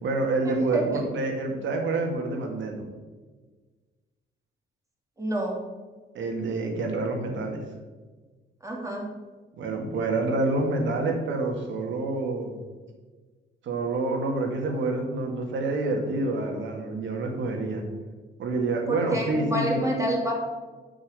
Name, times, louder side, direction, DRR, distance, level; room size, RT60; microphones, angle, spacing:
voice 1, 0.0-2.9 6.1-7.6 9.6-12.6 13.6-17.8 18.4-19.8, right 2 dB, 70° right, 2 dB, 2.0 m, -27 dB
voice 2, 5.2-5.6 8.6-9.1 18.9-20.3, right 1 dB, 15° right, -1 dB, 2.7 m, -27 dB
6.5 x 6.3 x 6.8 m, 1.3 s
cardioid pair, 90°, 20 cm